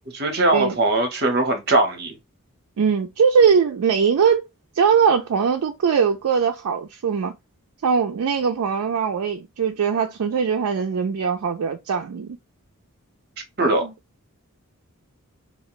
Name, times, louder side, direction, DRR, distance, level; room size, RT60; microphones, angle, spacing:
voice 1, 0.1-2.2 13.6-13.8, right 2 dB, 45° right, 0.8 m, -20 dB
voice 2, 2.8-4.5 4.7-7.3 7.8-12.4 13.6-13.9, right 6 dB, 80° right, 0.4 m, -21 dB
2.4 x 2.1 x 3.7 m
head